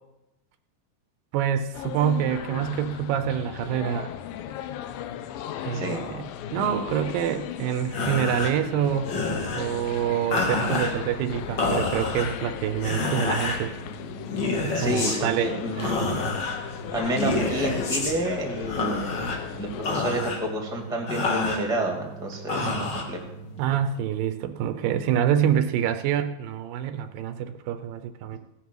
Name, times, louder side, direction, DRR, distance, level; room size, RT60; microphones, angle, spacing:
voice 1, 1.3-4.1 5.7-9.1 9.6-13.7 14.6-16.0 23.6-28.4, right 9 dB, 80° right, 10 dB, 2.4 m, -26 dB
sound 1, 1.7-20.0, left 10 dB, 85° left, 2.5 m, -36 dB
sound 2, 7.8-23.7, left 2 dB, 40° left, 2.0 m, -30 dB
voice 2, 14.7-16.1 16.9-19.2 19.6-23.2, right 1 dB, ahead, 1 dB, 1.7 m, -29 dB
16.5 x 10.5 x 4.7 m, 0.92 s
omnidirectional pair, 4.0 m